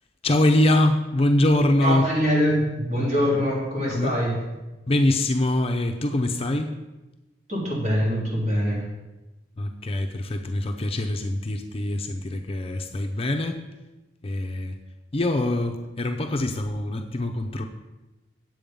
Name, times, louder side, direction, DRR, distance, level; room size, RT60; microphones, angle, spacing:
voice 1, 0.2-2.1 3.9-4.1 4.9-6.7 9.6-13.6 14.2-14.8 15.1-17.7, left 1 dB, 30° left, 5 dB, 0.6 m, -23 dB
voice 2, 1.8-4.4 7.5-8.8, equal, 40° right, -5 dB, 3.7 m, -24 dB
8.9 x 7.7 x 5.3 m, 1.1 s
head